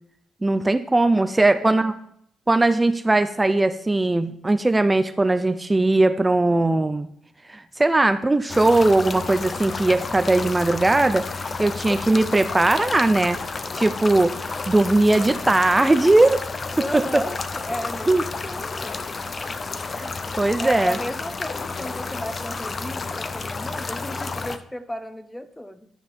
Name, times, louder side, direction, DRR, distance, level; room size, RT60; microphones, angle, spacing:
voice 1, 0.4-1.9 2.5-7.1 7.5-11.3 11.6-13.4 13.7-16.4 16.9-17.2 18.1-18.2 20.0-21.0, right 2 dB, 15° right, 11 dB, 0.5 m, -19 dB
voice 2, 1.1-2.0 16.8-19.1 20.6-25.9, left 1 dB, 10° left, 10 dB, 0.9 m, -34 dB
sound 1, 8.5-24.6, left 4 dB, 35° left, 0.7 m, -31 dB
12.0 x 5.4 x 4.3 m, 0.71 s
cardioid pair, 90°, 0 cm